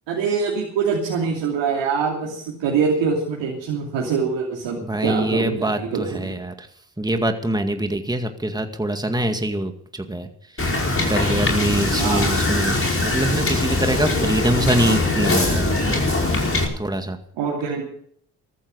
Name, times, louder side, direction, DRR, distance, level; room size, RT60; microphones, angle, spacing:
voice 1, 0.1-6.4 11.9-12.4 17.4-17.9, right 5 dB, 80° right, -3 dB, 2.9 m, -24 dB
voice 2, 4.8-6.7 7.0-10.3 11.1-16.1 16.8-17.2, right 1 dB, 10° right, 6 dB, 2.1 m, -24 dB
Wind / Boat Water vehicle, 10.6-16.6, left 2 dB, 30° left, 5.1 m, -21 dB
14.5 x 14.0 x 5.5 m, 0.63 s
supercardioid pair, 50°, 44 cm